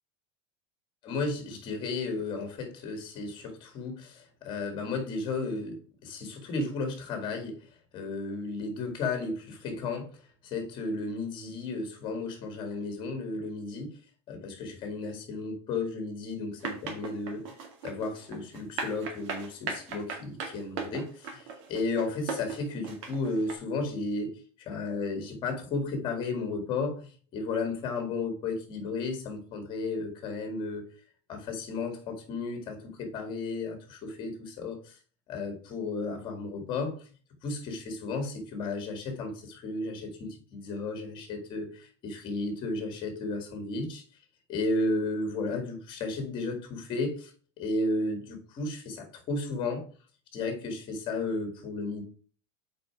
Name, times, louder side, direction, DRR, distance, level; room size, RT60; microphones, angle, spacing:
voice 1, 1.0-7.6 7.9-10.1 10.4-14.0 14.3-17.4 17.8-30.8 31.3-34.9 35.3-37.1 37.4-44.0 44.5-47.3 47.6-49.8 50.3-52.0, left 3 dB, 35° left, 6 dB, 1.9 m, -33 dB
sound 1, 16.6-23.5, right 5 dB, 70° right, 2.1 m, -37 dB
6.7 x 4.8 x 4.6 m, 0.42 s
cardioid pair, 165°, 15 cm